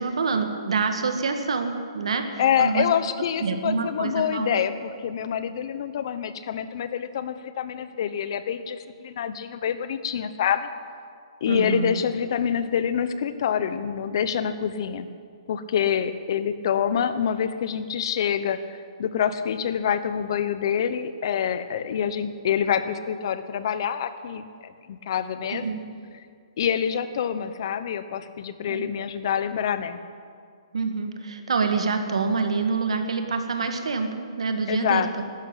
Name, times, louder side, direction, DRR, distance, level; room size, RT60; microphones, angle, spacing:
voice 1, 0.0-2.9 3.4-4.6 11.5-12.0 25.5-25.8 28.7-28.9 30.7-35.1, right 4 dB, 80° right, 6 dB, 1.8 m, -26 dB
voice 2, 2.4-10.7 11.4-15.1 15.5-18.6 19.0-25.8 26.6-30.0 34.7-35.2, left 8 dB, 50° left, 12 dB, 1.0 m, -26 dB
12.0 x 12.0 x 8.9 m, 2.2 s
hypercardioid pair, 160°, 3 cm